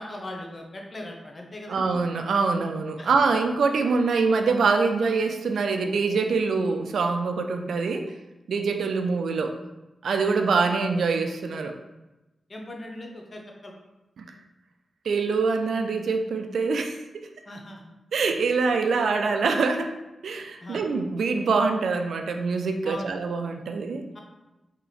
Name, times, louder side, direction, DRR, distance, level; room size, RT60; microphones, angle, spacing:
voice 1, 0.0-1.8 3.0-3.1 12.5-13.8 17.5-17.8 20.6-20.8 22.8-23.1 24.1-24.2, left 1 dB, 35° left, 1 dB, 0.6 m, -39 dB
voice 2, 1.7-8.0 8.5-9.5 10.0-11.7 14.2-14.3 15.1-17.3 18.1-19.9 20.2-24.0, right 4 dB, 85° right, 5 dB, 0.4 m, -24 dB
3.2 x 2.9 x 3.9 m, 1.0 s
wide cardioid pair, 110°, 0 cm